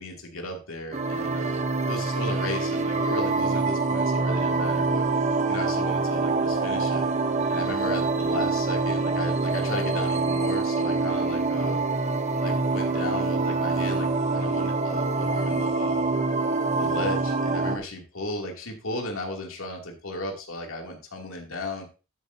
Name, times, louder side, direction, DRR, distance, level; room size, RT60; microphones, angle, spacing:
voice 1, 0.0-5.0 5.5-7.1 7.5-11.8 12.4-16.1 16.8-21.9, left 1 dB, 75° left, 1 dB, 2.6 m, -35 dB
sound 1, 0.9-17.8, right 3 dB, 30° right, 0.8 m, -25 dB
12.0 x 8.8 x 2.7 m, 0.33 s
head